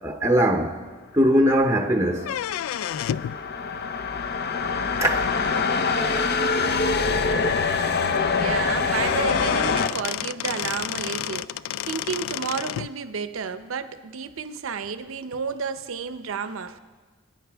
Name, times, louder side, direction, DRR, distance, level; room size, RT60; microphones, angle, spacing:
voice 1, 0.0-0.8 1.1-2.3 5.0-5.4, equal, 15° right, 0.6 m, -21 dB
Not Happy Ending, 1.9-9.9, left 4 dB, 55° left, 0.6 m, -24 dB
sound 1, 2.2-3.4 5.1-5.2 6.2-6.3 6.7-6.8 7.1-7.2 8.5-8.6 8.9-12.9, left 11 dB, 85° left, 0.3 m, -30 dB
voice 2, 8.4-11.5 11.8-16.8, right 5 dB, 80° right, 0.6 m, -31 dB
22.0 x 9.3 x 3.4 m
head